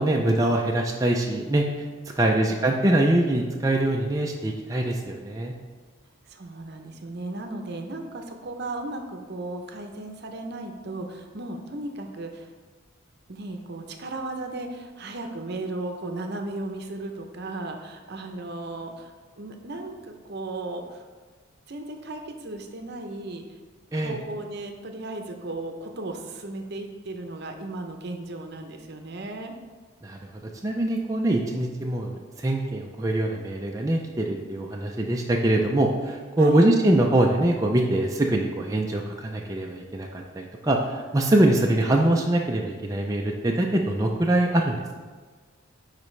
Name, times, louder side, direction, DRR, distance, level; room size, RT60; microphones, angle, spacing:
voice 1, 0.0-1.9 2.2-5.5 23.9-24.2 30.0-30.2 30.6-44.9, right 1 dB, 15° right, 0 dB, 0.4 m, -23 dB
voice 2, 6.3-12.5 13.3-21.0 21.7-23.4 23.9-29.5 36.4-36.6, right 2 dB, 55° right, 4 dB, 0.7 m, -35 dB
9.9 x 4.1 x 3.2 m, 1.4 s
head